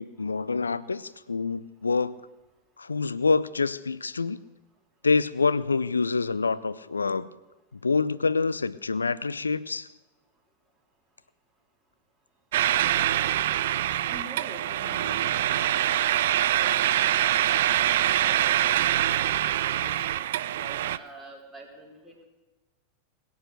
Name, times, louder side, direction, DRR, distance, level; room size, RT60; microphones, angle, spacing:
voice 1, 0.0-2.1 2.8-4.4 5.0-7.3 7.7-9.9, left 4 dB, 75° left, 17 dB, 0.5 m, -26 dB
sound 1, 12.5-21.0, right 12 dB, 55° right, 0.4 m, -24 dB
voice 2, 14.1-17.7 18.3-19.0 19.3-22.2, right 1 dB, 5° left, -2 dB, 3.8 m, -46 dB
21.5 x 8.2 x 6.6 m, 1.1 s
figure-of-eight pair, 90°, 0 cm